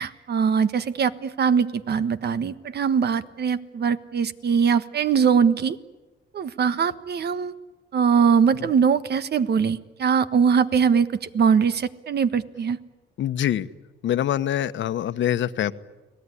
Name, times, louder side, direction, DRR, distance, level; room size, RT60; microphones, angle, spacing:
voice 1, 0.0-5.8 6.3-7.5 7.9-11.1 11.3-12.8, right 6 dB, 55° right, 12 dB, 1.4 m, -21 dB
voice 2, 13.2-13.7 14.0-15.7, left 11 dB, 70° left, 12 dB, 1.1 m, -24 dB
30.0 x 19.5 x 9.9 m, 1.2 s
cardioid pair, 90°, 20 cm